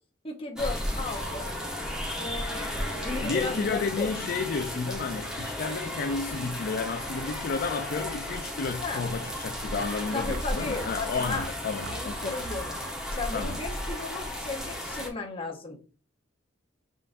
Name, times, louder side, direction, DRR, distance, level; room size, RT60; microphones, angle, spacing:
voice 1, 0.2-1.5 2.2-4.1 8.8-9.0 10.1-11.5 11.9-12.8 13.1-15.8, left 3 dB, 30° left, 0.8 m, -35 dB
sound 1, 0.6-15.1, left 1 dB, 5° right, 1.0 m, -34 dB
voice 2, 3.2-12.4 13.3-13.6, left 4 dB, 50° left, 0.4 m, -32 dB
sound 2, 8.4-13.9, right 3 dB, 55° right, 0.5 m, -45 dB
5.5 x 3.7 x 2.5 m
head